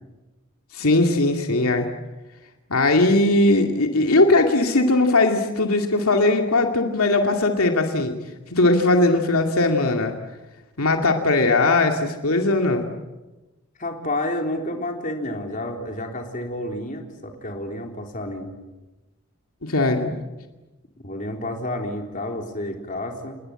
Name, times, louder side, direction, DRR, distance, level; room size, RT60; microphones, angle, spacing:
voice 1, 0.7-1.9 2.7-8.2 8.5-10.1 10.8-12.9 19.6-20.2, left 2 dB, 80° left, 3 dB, 2.4 m, -19 dB
voice 2, 13.8-18.5 21.0-23.3, left 1 dB, 35° left, 3 dB, 3.9 m, -30 dB
29.0 x 20.5 x 8.9 m, 1.1 s
head